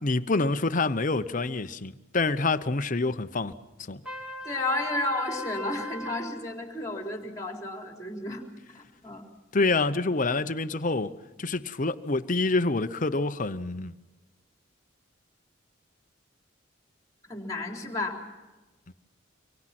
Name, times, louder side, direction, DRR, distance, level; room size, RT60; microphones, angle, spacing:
voice 1, 0.0-3.5 3.9-4.0 9.5-13.9 18.9-19.0, left 3 dB, 40° left, 0.9 m, -27 dB
Trumpet, 4.0-6.3, left 2 dB, 5° right, 3.6 m, -37 dB
voice 2, 4.4-8.4 8.7-9.2 17.3-18.2, left 2 dB, 15° left, 3.9 m, -32 dB
26.0 x 23.5 x 6.0 m
head